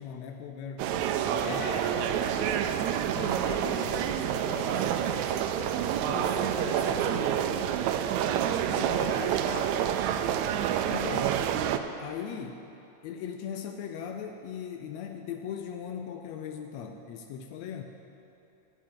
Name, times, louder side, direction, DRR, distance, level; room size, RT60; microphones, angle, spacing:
voice 1, 0.0-1.6 3.1-3.4 8.8-9.1 10.9-11.4 12.0-12.6 13.0-17.8, left 8 dB, 90° left, 5 dB, 1.5 m, -39 dB
sound 1, 0.8-11.8, right 10 dB, 85° right, 1.6 m, -28 dB
voice 2, 1.4-2.9 3.4-5.7 6.0-7.7 8.7-9.7, left 3 dB, 45° left, -1 dB, 1.8 m, -40 dB
17.5 x 11.5 x 3.8 m, 3.0 s
omnidirectional pair, 3.8 m